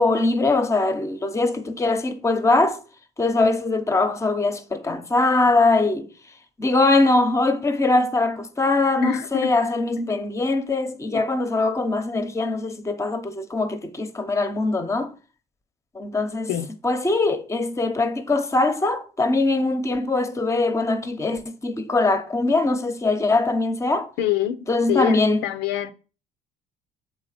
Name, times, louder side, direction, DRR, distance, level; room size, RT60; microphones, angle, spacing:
voice 1, 0.0-2.8 3.2-6.1 6.6-15.1 15.9-16.5 16.8-24.1 24.7-25.4, left 2 dB, 15° left, 0.9 m, -22 dB
voice 2, 9.0-9.5 10.0-10.2 16.5-16.7 24.2-24.6 24.9-25.9, left 12 dB, 90° left, 0.7 m, -25 dB
7.8 x 3.8 x 5.0 m
cardioid pair, 110°, 17 cm